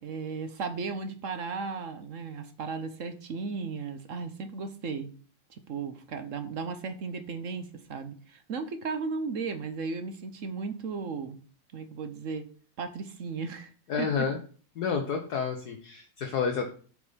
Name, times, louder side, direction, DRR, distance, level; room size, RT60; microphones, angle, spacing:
voice 1, 0.0-5.1 5.5-11.4 11.7-12.5 12.8-13.7 14.0-14.3, right 4 dB, 50° right, 9 dB, 1.1 m, -35 dB
voice 2, 13.9-14.4 14.8-16.7, left 6 dB, 60° left, 4 dB, 1.4 m, -30 dB
7.8 x 5.4 x 5.0 m, 0.41 s
omnidirectional pair, 2.0 m